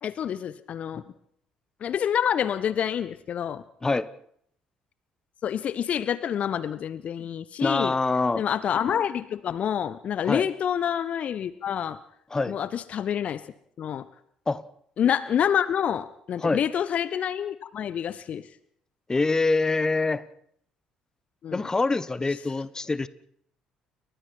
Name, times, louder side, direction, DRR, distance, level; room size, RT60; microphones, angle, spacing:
voice 1, 0.0-1.0 1.8-3.6 5.4-7.9 8.4-12.0 12.5-13.4 13.8-14.1 15.0-18.4 21.4-21.7, left 9 dB, 45° left, 16 dB, 1.1 m, -27 dB
voice 2, 7.6-8.4 10.2-10.5 12.3-12.6 14.5-14.6 16.4-16.6 19.1-20.3 21.5-23.1, left 3 dB, 20° left, 17 dB, 1.3 m, -25 dB
30.0 x 23.5 x 4.5 m, 0.67 s
figure-of-eight pair, 50°, 3 cm